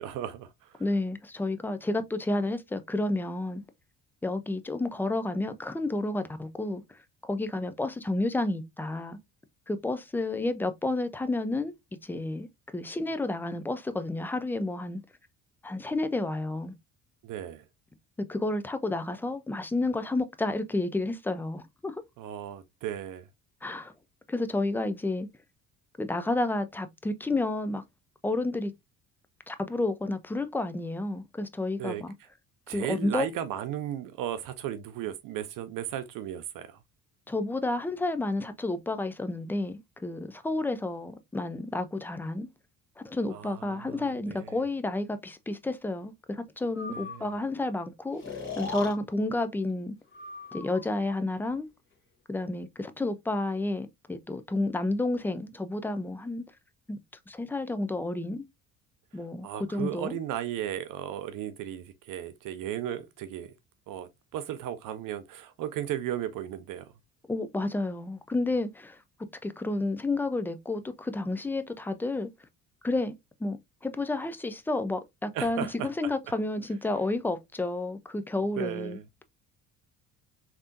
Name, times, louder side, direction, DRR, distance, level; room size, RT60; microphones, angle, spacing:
voice 1, 0.0-0.8 17.2-17.6 22.2-23.3 31.8-32.0 32.7-36.8 43.3-44.6 46.9-47.3 59.4-63.5 63.9-66.9 75.3-76.1 78.6-79.0, right 11 dB, 55° right, 0.5 m, -35 dB
voice 2, 0.8-3.6 4.2-9.2 9.7-11.7 12.0-15.0 15.6-16.7 18.3-22.0 23.6-23.9 24.3-25.3 26.0-27.8 28.2-28.7 29.5-32.1 32.7-33.3 37.3-42.5 43.0-48.2 48.6-49.9 50.5-51.7 52.3-56.4 56.9-57.0 57.3-58.4 59.1-60.1 67.3-69.0 69.4-72.3 72.8-73.2 73.4-79.0, left 2 dB, 5° left, 0.3 m, -31 dB
Breathing, 46.7-47.4 48.2-48.9 50.1-50.9, left 4 dB, 30° left, 1.4 m, -38 dB
3.3 x 2.8 x 2.5 m
hypercardioid pair, 55°, 41 cm